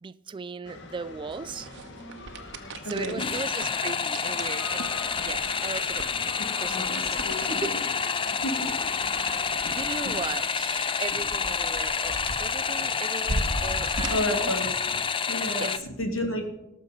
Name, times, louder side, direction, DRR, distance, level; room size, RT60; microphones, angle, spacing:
voice 1, 0.0-1.7 2.9-4.9 5.2-7.7 9.2-14.5 15.6-15.7, right 4 dB, 25° right, 0.3 m, -37 dB
sound 1, 0.6-10.0, left 2 dB, 60° left, 1.6 m, -44 dB
sound 2, 1.3-15.0, right 2 dB, 60° right, 1.1 m, -39 dB
voice 2, 2.8-3.3 6.7-7.8 8.4-8.7 9.6-10.1 11.1-11.2 12.8-12.9 14.0-15.0 15.3-16.5, left 1 dB, 85° left, 2.5 m, -32 dB
sound 3, 3.2-15.8, left 6 dB, 25° left, 0.5 m, -28 dB
18.5 x 6.6 x 5.1 m
head